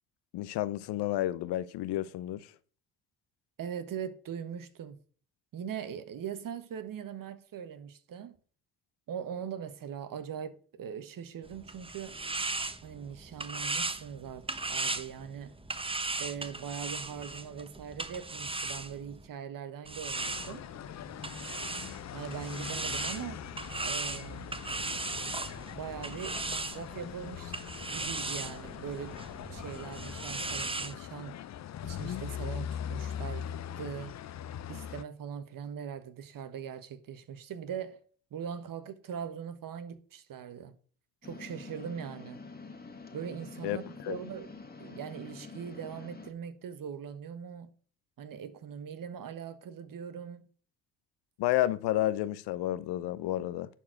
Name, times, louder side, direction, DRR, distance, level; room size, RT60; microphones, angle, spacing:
voice 1, 0.3-2.5 43.6-43.8 44.0-44.2 51.4-53.7, left 14 dB, 75° left, 0.8 m, -31 dB
voice 2, 3.6-5.0 5.5-8.3 9.1-12.2 12.8-15.5 16.2-20.7 22.1-23.4 23.8-24.5 25.7-27.5 27.9-29.2 29.5-31.4 31.8-34.1 34.7-38.0 38.3-40.7 41.2-42.4 43.1-44.5 44.8-47.7 48.2-50.5, right 8 dB, 55° right, 1.5 m, -41 dB
sound 1, 11.4-19.3 19.9-30.9, right 3 dB, 15° right, 1.0 m, -38 dB
sound 2, 20.1-35.0, left 10 dB, 45° left, 0.6 m, -41 dB
sound 3, 41.2-46.3, left 4 dB, 25° left, 1.9 m, -47 dB
11.0 x 4.6 x 6.4 m
cardioid pair, 85°, 39 cm